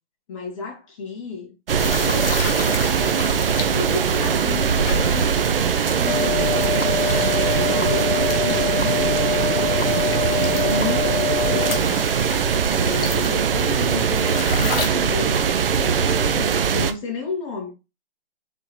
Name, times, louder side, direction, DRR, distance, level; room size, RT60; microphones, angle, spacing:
voice 1, 0.3-1.5 1.9-6.8 7.6-12.1 12.7-17.7, left 4 dB, 30° left, 1.6 m, -33 dB
sound 1, 1.7-16.9, right 7 dB, 55° right, 0.6 m, -21 dB
sound 2, 1.8-14.9, left 4 dB, 55° left, 1.3 m, -34 dB
sound 3, 6.1-11.8, left 8 dB, 80° left, 0.6 m, -25 dB
4.6 x 3.7 x 3.0 m
figure-of-eight pair, 150°, 34 cm